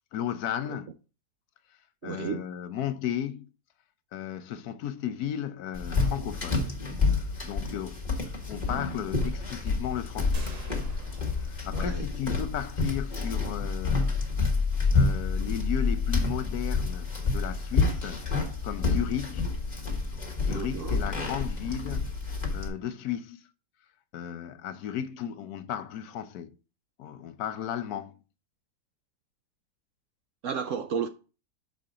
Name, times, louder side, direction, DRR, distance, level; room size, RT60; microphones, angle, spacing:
voice 1, 0.1-0.9 2.0-3.5 4.1-6.7 7.1-10.5 11.3-14.1 14.9-18.2 18.6-19.5 20.4-22.1 22.5-23.5 24.1-26.6 27.0-28.1, left 10 dB, 70° left, 1.2 m, -35 dB
voice 2, 2.0-2.4 11.7-12.1 20.5-21.0 30.4-31.1, right 7 dB, 65° right, 0.8 m, -32 dB
sound 1, 5.7-22.7, left 4 dB, 25° left, 1.6 m, -28 dB
sound 2, 10.3-12.7, right 1 dB, 35° right, 0.6 m, -42 dB
6.5 x 5.1 x 3.8 m
omnidirectional pair, 1.7 m